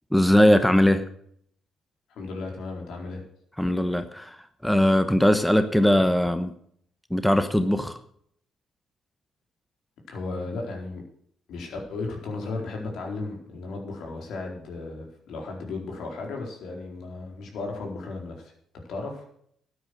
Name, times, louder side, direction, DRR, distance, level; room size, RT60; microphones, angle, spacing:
voice 1, 0.1-1.1 3.6-4.4 4.6-6.5 7.1-8.0, equal, 5° left, 1.0 m, -20 dB
voice 2, 2.1-3.2 10.1-11.0 11.5-18.5 18.9-19.2, left 3 dB, 75° left, 4.3 m, -35 dB
13.0 x 9.4 x 6.5 m
cardioid pair, 90°, 0 cm